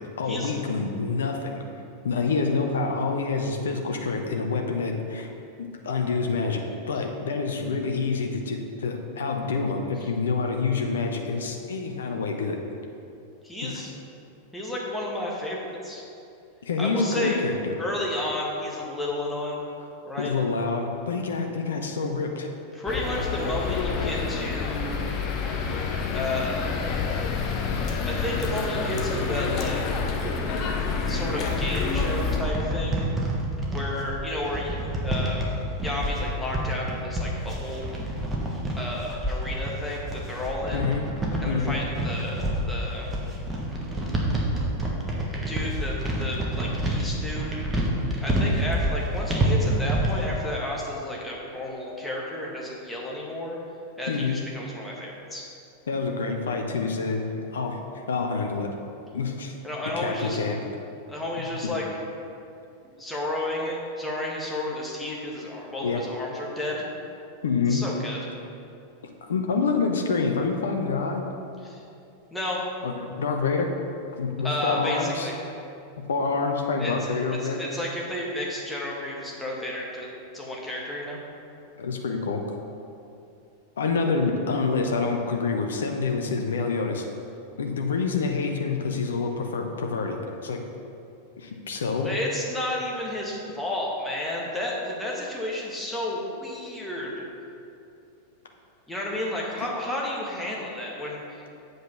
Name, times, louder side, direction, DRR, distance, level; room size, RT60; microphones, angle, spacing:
voice 1, 0.2-1.6 2.0-5.3 5.6-6.6 6.9-12.6 13.6-13.8 16.6-17.7 20.2-22.5 40.7-41.0 41.5-41.8 54.1-54.4 55.9-58.7 59.1-59.5 60.0-60.6 61.6-61.7 65.8-66.0 67.4-67.8 69.2-71.2 72.8-73.7 74.2-75.3 76.1-77.6 81.8-82.4 83.8-87.0 87.6-90.6 91.4-92.1 99.6-99.7, left 4 dB, 65° left, 3 dB, 0.7 m, -27 dB
voice 2, 13.4-13.9 14.5-16.0 16.8-17.4 17.8-19.6 20.0-20.3 22.7-25.0 26.1-26.7 28.0-30.0 31.0-33.1 33.7-35.5 35.8-37.8 38.8-40.9 41.4-43.1 45.5-47.6 48.2-53.6 54.0-55.4 59.6-60.4 61.1-61.8 63.0-66.9 67.7-68.2 71.6-71.8 72.3-72.6 74.4-75.3 76.8-81.2 91.9-97.3 98.9-101.5, left 1 dB, 5° left, -4 dB, 1.6 m, -32 dB
sound 1, 22.9-32.4, left 5 dB, 35° left, 0.9 m, -28 dB
sound 2, 31.5-50.3, right 1 dB, 15° right, 1.4 m, -28 dB
7.9 x 5.2 x 5.9 m, 2.6 s
figure-of-eight pair, 90°, 0 cm